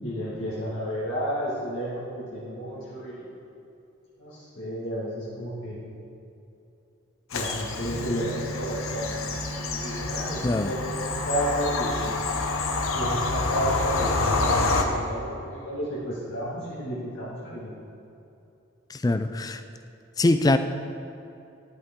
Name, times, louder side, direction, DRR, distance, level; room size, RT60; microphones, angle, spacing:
voice 1, 0.0-3.4 4.2-5.8 7.3-12.1 12.9-17.7, equal, 65° left, -8 dB, 1.9 m, -32 dB
Bird vocalization bird call bird song / Train, 7.3-14.8, left 3 dB, 90° left, 0.8 m, -28 dB
sound 1, 7.8-14.4, right 1 dB, 50° right, 1.8 m, -37 dB
voice 2, 18.9-19.6 20.2-20.6, left 2 dB, 20° left, 9 dB, 0.3 m, -22 dB
11.5 x 8.3 x 3.7 m, 2.8 s
head